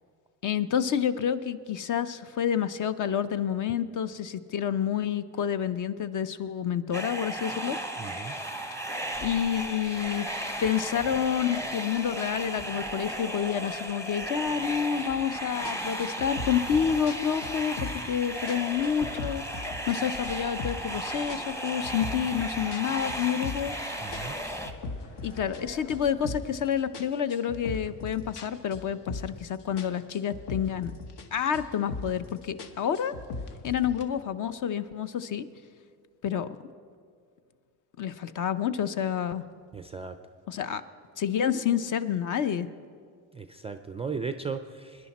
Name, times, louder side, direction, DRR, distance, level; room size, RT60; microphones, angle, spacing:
voice 1, 0.4-7.8 9.2-10.3 10.6-19.4 19.9-23.7 25.2-30.9 31.3-33.1 33.6-35.5 36.2-36.6 38.0-39.4 40.5-40.8 41.2-42.7, left 8 dB, 45° left, 13 dB, 0.7 m, -29 dB
sound 1, 6.9-24.7, right 1 dB, 5° left, 0.9 m, -35 dB
voice 2, 8.0-8.3 24.0-24.4 39.7-40.2 43.3-45.1, right 5 dB, 15° right, 8 dB, 0.3 m, -36 dB
sound 2, 9.1-26.2, left 2 dB, 80° left, 2.6 m, -50 dB
sound 3, 15.1-15.3 15.7-18.2 18.5-20.0 20.2-21.0 21.3-23.8 24.1-26.6 26.9-29.5 29.8-31.3 31.5-32.3 32.6-34.0, left 3 dB, 60° left, 1.2 m, -39 dB
22.0 x 10.5 x 4.2 m, 2.1 s
cardioid pair, 115°, 44 cm